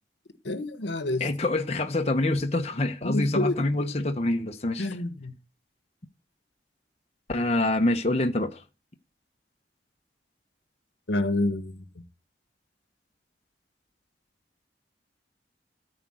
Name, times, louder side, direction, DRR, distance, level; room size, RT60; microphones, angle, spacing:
voice 1, 0.4-1.3 3.0-3.6 4.8-5.3 11.1-11.8, left 2 dB, 85° left, 1.2 m, -28 dB
voice 2, 1.2-4.9 7.3-8.6, left 2 dB, 35° left, 0.9 m, -26 dB
13.5 x 5.0 x 7.7 m
head